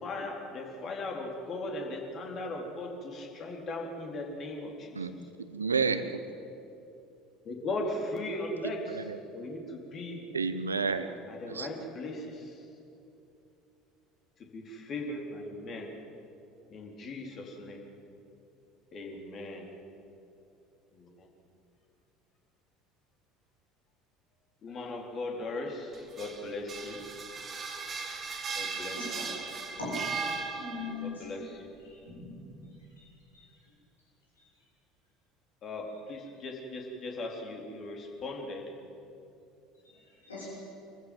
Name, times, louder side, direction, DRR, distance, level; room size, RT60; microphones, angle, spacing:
voice 1, 0.0-5.1 7.4-10.2 11.3-12.6 14.5-15.9 16.7-17.8 18.9-19.7 20.9-21.3 24.6-27.0 28.6-29.3 31.0-31.7 35.6-38.6, left 2 dB, 40° left, 0 dB, 4.2 m, -38 dB
voice 2, 5.5-6.1 8.9-9.2 10.3-11.1 11.5-11.7, right 5 dB, 85° right, 11 dB, 1.0 m, -30 dB
sound 1, 25.9-31.1, right 5 dB, 35° right, 2.1 m, -37 dB
voice 3, 28.8-29.3 29.8-29.9 30.4-31.5 32.1-32.3 32.6-32.7 33.3-33.4 39.8-39.9 40.2-40.5, left 4 dB, 80° left, -5 dB, 6.9 m, -41 dB
26.5 x 15.0 x 7.8 m, 2.7 s
figure-of-eight pair, 65°, 0 cm